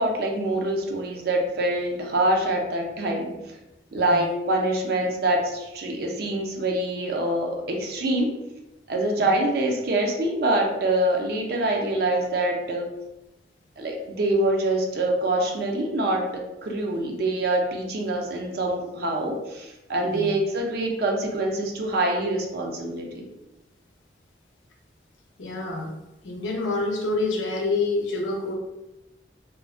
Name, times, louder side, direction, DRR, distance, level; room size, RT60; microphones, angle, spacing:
voice 1, 0.0-3.3 3.9-8.3 8.9-12.9 13.8-23.3, right 1 dB, 55° right, 1 dB, 0.4 m, -25 dB
voice 2, 3.9-4.3 9.2-9.3 20.0-20.3 25.4-25.9 26.2-28.5, left 3 dB, 80° left, 1 dB, 0.5 m, -27 dB
2.4 x 2.1 x 2.3 m, 0.94 s
head